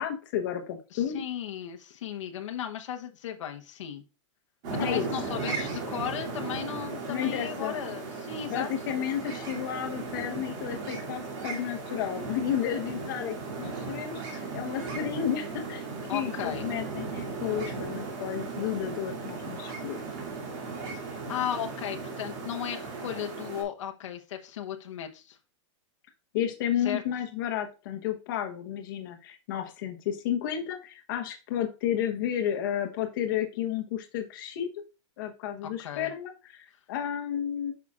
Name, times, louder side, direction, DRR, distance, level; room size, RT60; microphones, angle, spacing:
voice 1, 0.0-1.2 4.8-5.1 7.1-7.8 8.5-15.9 16.1-20.0 26.3-34.7 35.2-37.7, left 10 dB, 40° left, 3 dB, 1.1 m, -32 dB
voice 2, 0.9-4.0 4.7-9.0 16.1-16.6 21.1-25.4 26.8-27.0 35.6-36.1, left 10 dB, 70° left, 4 dB, 1.0 m, -36 dB
sound 1, 4.6-23.6, right 4 dB, 35° right, 2.6 m, -36 dB
8.5 x 5.8 x 2.4 m, 0.32 s
supercardioid pair, 180°, 16 cm